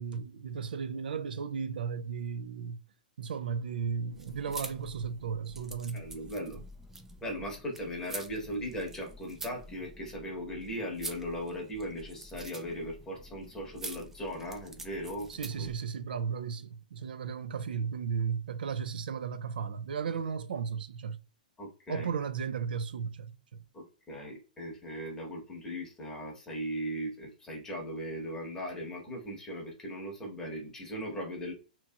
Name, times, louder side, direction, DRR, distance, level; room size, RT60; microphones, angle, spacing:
voice 1, 0.0-2.8 3.2-6.0 15.3-21.2 21.9-23.3, right 6 dB, 80° right, 0.4 m, -35 dB
sound 1, 4.1-15.8, right 2 dB, 10° right, 0.3 m, -46 dB
voice 2, 5.9-6.6 7.2-15.3 15.6-15.7 21.6-22.1 23.7-31.5, equal, 10° left, 1.0 m, -38 dB
2.8 x 2.8 x 2.2 m
hypercardioid pair, 145°, 5 cm